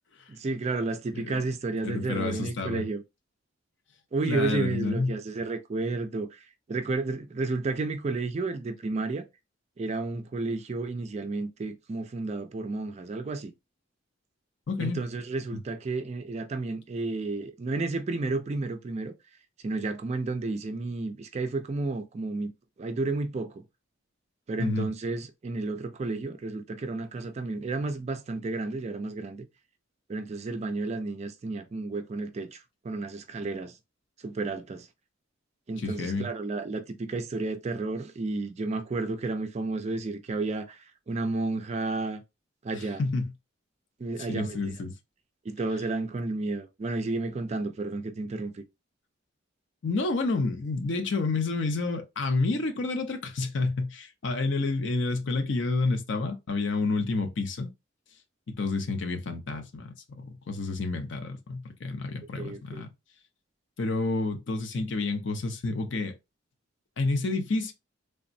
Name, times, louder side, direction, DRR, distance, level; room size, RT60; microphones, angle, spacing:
voice 1, 0.3-3.0 4.1-9.2 9.8-13.5 14.8-19.1 19.6-22.5 22.8-23.6 24.5-29.5 30.1-32.6 32.8-33.7 34.2-34.9 35.7-42.2 42.6-43.0 44.0-44.7 45.5-48.6 62.4-62.8, right 3 dB, 35° right, 0.3 m, -32 dB
voice 2, 1.1-1.5 1.8-2.8 4.3-5.2 14.7-15.0 24.6-24.9 35.8-36.3 42.7-43.3 44.2-44.9 49.8-57.7 58.5-62.9 63.8-66.1 67.0-67.7, left 3 dB, 65° left, 0.6 m, -29 dB
3.4 x 2.0 x 2.5 m
head